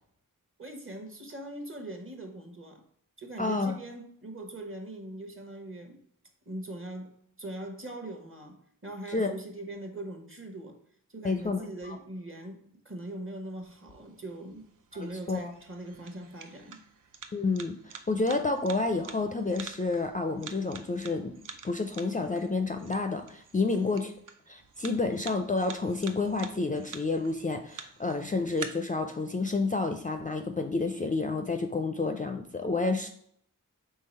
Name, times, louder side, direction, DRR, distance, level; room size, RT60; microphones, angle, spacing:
voice 1, 0.6-2.8 3.2-6.0 6.5-10.8 11.1-14.7 14.9-16.8 23.7-23.9, right 1 dB, 40° right, 4 dB, 1.0 m, -41 dB
voice 2, 3.4-3.8 9.1-9.3 11.2-12.0 15.3-15.5 17.3-21.4 21.6-24.1 24.5-33.1, left 3 dB, 25° left, 6 dB, 0.4 m, -29 dB
sound 1, 13.6-28.6, right 6 dB, 65° right, 0.5 m, -48 dB
3.8 x 3.2 x 4.2 m, 0.67 s
cardioid pair, 40°, 34 cm